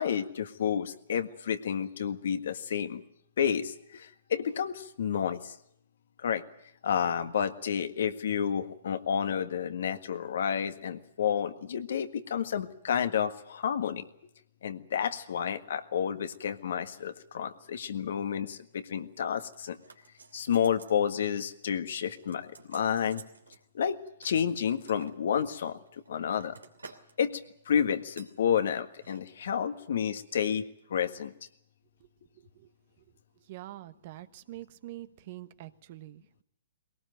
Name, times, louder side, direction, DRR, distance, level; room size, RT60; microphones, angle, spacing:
voice 1, 0.0-3.0 3.4-5.5 6.2-6.4 6.8-14.0 14.6-19.8 20.3-23.2 23.7-24.0 24.2-26.6 27.2-27.4 27.6-30.6 30.9-31.3, left 8 dB, 65° left, 9 dB, 1.7 m, -30 dB
sound 1, 19.5-21.0 21.3-21.6 21.9-23.6 24.2-25.2 25.8-27.1 27.4-27.7 28.2-28.4 28.9-29.2 29.5-29.6, right 4 dB, 85° right, 2.9 m, -53 dB
voice 2, 33.5-36.4, right 15 dB, 50° right, 13 dB, 1.2 m, -45 dB
21.0 x 18.5 x 9.2 m, 0.73 s
hypercardioid pair, 125°, 0 cm